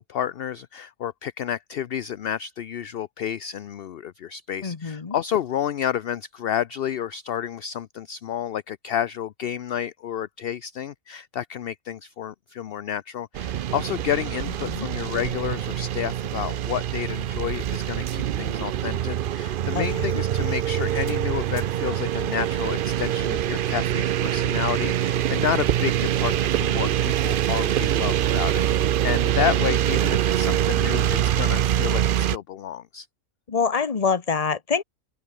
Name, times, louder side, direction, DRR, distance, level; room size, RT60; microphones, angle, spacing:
voice 1, 0.0-33.1, left 9 dB, 55° left, 0.7 m, -30 dB
voice 2, 4.6-5.2 14.6-14.9 19.7-20.2 33.5-34.8, left 5 dB, 30° left, 1.1 m, -26 dB
sound 1, 13.3-32.4, right 11 dB, 90° right, 0.4 m, -24 dB
open air
omnidirectional pair, 1.5 m